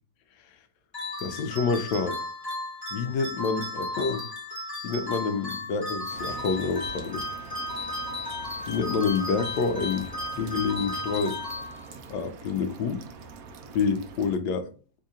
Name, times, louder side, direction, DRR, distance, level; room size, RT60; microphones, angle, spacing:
sound 1, 0.9-12.2, left 1 dB, 15° left, 0.8 m, -35 dB
voice 1, 1.2-2.2 2.9-4.3 4.8-7.2 8.7-10.1 10.4-11.4 12.1-13.0 13.7-14.7, left 5 dB, 85° left, 8 dB, 1.3 m, -27 dB
sound 2, 6.1-14.4, right 5 dB, 70° right, 0.9 m, -44 dB
3.1 x 2.8 x 3.6 m, 0.39 s
omnidirectional pair, 1.9 m